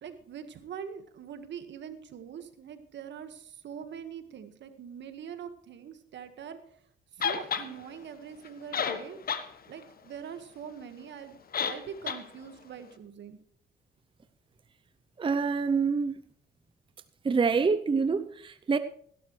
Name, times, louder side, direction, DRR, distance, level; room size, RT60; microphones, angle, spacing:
voice 1, 0.0-6.6 7.2-9.2 9.7-11.4 11.7-13.4, right 8 dB, 65° right, 1.6 m, -43 dB
sound 1, 7.2-7.7 8.5-8.6 8.7-9.5 9.8-9.9 11.5-11.8 12.1-12.2, left 7 dB, 50° left, 1.3 m, -30 dB
voice 2, 15.2-16.1 17.2-18.8, right 5 dB, 25° right, 0.6 m, -26 dB
16.5 x 12.0 x 3.2 m
cardioid pair, 90°, 20 cm